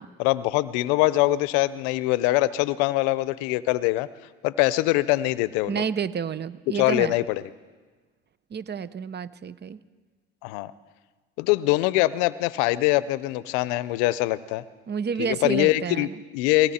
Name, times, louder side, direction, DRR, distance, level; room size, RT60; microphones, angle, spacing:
voice 1, 0.2-4.1 4.4-5.8 6.7-7.4 10.4-10.7 11.4-14.6 15.2-16.1 16.3-16.7, left 17 dB, 75° left, 18 dB, 0.7 m, -23 dB
voice 2, 5.7-7.1 8.5-9.8 14.9-16.1, right 7 dB, 30° right, 17 dB, 0.7 m, -30 dB
18.5 x 17.0 x 4.3 m, 1.4 s
supercardioid pair, 75°, 32 cm